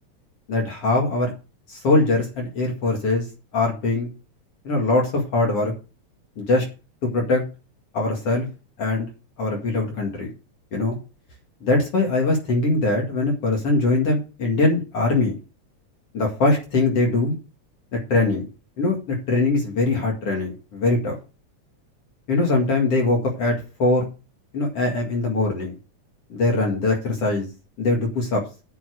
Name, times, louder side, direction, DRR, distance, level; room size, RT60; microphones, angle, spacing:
voice 1, 0.5-1.3 1.7-3.2 3.5-4.1 4.6-5.7 6.4-6.6 7.0-7.4 7.9-8.5 8.8-9.1 9.4-10.3 10.7-11.0 11.6-15.4 16.1-17.4 18.1-18.5 18.8-21.2 22.3-23.5 23.8-24.1 24.5-25.8 26.3-27.5 27.8-28.4, left 2 dB, 50° left, 0 dB, 3.1 m, -22 dB
9.7 x 6.2 x 6.3 m, 0.31 s
omnidirectional pair, 3.5 m